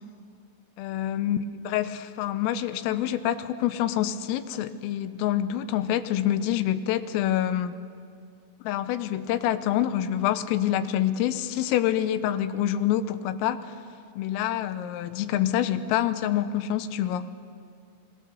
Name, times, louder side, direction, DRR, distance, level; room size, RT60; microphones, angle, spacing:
voice 1, 0.8-7.8 8.7-13.7 14.2-17.3, left 11 dB, 85° left, 12 dB, 3.4 m, -26 dB
26.5 x 20.0 x 6.9 m, 2.2 s
omnidirectional pair, 6.0 m